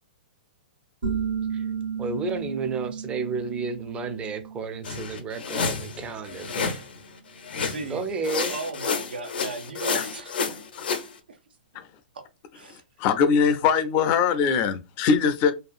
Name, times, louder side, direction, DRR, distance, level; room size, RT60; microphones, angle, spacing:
sound 1, 1.0-6.4, right 7 dB, 65° right, 1.1 m, -34 dB
voice 1, 2.0-6.8 7.9-8.5, right 4 dB, 20° right, 0.5 m, -32 dB
sound 2, 4.8-6.9 7.4-8.0 8.2-11.1, left 5 dB, 75° left, 0.7 m, -30 dB
voice 2, 7.6-10.5 10.8-10.9 11.3-11.4 12.5-12.8, right 3 dB, 85° right, 0.7 m, -37 dB
voice 3, 12.7-15.5, left 6 dB, 40° left, 0.4 m, -22 dB
2.7 x 2.4 x 2.4 m
hypercardioid pair, 125°, 5 cm